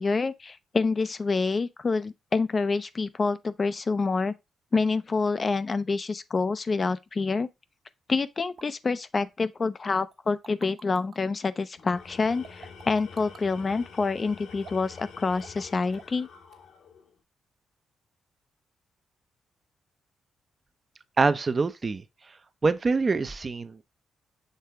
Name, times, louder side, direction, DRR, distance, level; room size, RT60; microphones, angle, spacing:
voice 1, 0.0-4.3 4.7-7.5 8.1-16.3, left 4 dB, 35° left, 0.4 m, -27 dB
sound 1, 8.6-8.7 9.1-9.3 10.1-11.2 12.4-13.5 14.6-15.0 15.4-15.7 15.9-16.2 16.5-16.6, right 6 dB, 60° right, 1.3 m, -48 dB
Tools, 11.8-17.1, left 6 dB, 75° left, 1.4 m, -47 dB
voice 2, 21.2-22.0 22.6-23.8, right 4 dB, 35° right, 0.6 m, -25 dB
6.7 x 3.4 x 4.4 m
cardioid pair, 100°, 0 cm